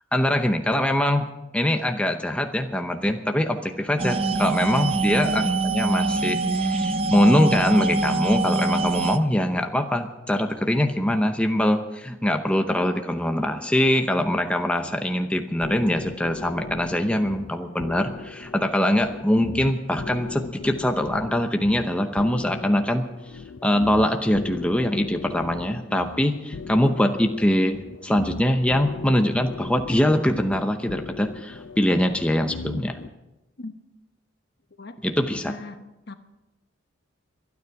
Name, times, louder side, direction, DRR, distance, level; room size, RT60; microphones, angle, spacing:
voice 1, 0.1-1.2 1.5-23.0 23.6-27.8 28.0-33.0 35.0-35.5, left 1 dB, 5° left, 0.7 m, -23 dB
sound 1, 4.0-9.2, right 3 dB, 30° right, 0.6 m, -24 dB
voice 2, 4.6-4.9 33.6-33.7 34.8-35.0 35.3-36.1, left 3 dB, 55° left, 1.1 m, -39 dB
sound 2, 15.6-33.1, left 4 dB, 75° left, 0.6 m, -38 dB
24.5 x 9.6 x 4.7 m
head